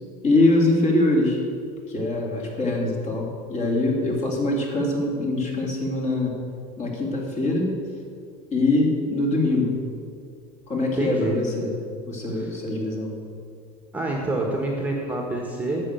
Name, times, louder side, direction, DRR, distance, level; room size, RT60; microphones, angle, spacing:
voice 1, 0.2-1.4 1.9-6.4 6.8-7.8 8.5-9.8 10.7-11.7 12.0-13.1, left 2 dB, 35° left, -1 dB, 2.9 m, -23 dB
voice 2, 10.9-11.3 12.3-12.5 13.9-15.8, right 2 dB, 5° right, 0 dB, 1.4 m, -27 dB
9.9 x 6.9 x 9.0 m, 2.3 s
supercardioid pair, 130°, 20 cm